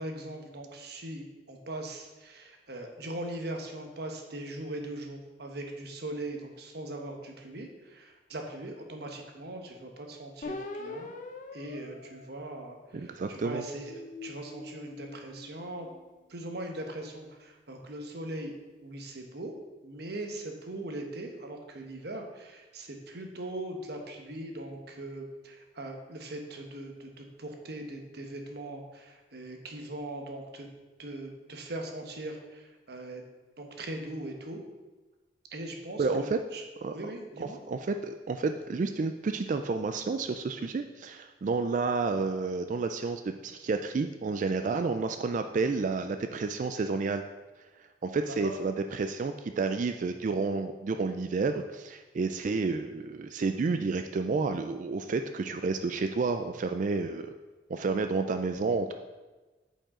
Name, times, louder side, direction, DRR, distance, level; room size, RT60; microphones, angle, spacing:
voice 1, 0.0-11.1 11.5-15.9 16.3-18.6 18.8-19.5 19.8-30.7 31.0-33.2 33.6-34.6 35.5-36.6 36.9-37.6 48.3-48.5, right 1 dB, 60° right, 3 dB, 1.1 m, -40 dB
sound 1, 10.4-13.1 13.7-16.2, left 3 dB, 45° left, 0.6 m, -44 dB
voice 2, 12.9-13.6 36.0-36.4 36.8-37.0 37.4-47.2 48.0-57.3 57.7-58.9, right 4 dB, 45° right, 7 dB, 0.3 m, -30 dB
8.6 x 5.4 x 3.7 m, 1.2 s
head